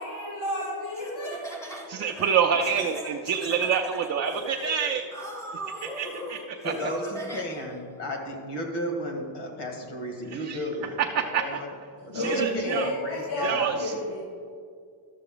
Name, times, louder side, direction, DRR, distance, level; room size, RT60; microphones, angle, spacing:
voice 1, 0.0-1.3 12.0-14.2, equal, 80° left, -7 dB, 2.6 m, -31 dB
Laughter, 0.9-7.8, equal, 5° left, 0.7 m, -39 dB
voice 2, 1.9-5.1 5.8-6.7 10.3-10.6 11.0-11.6 12.1-12.9 13.4-13.9, right 7 dB, 35° right, 2 dB, 0.4 m, -27 dB
voice 3, 6.6-11.8 12.1-13.7, equal, 60° left, 2 dB, 2.1 m, -33 dB
13.0 x 6.7 x 3.8 m, 2.2 s
cardioid pair, 155°, 46 cm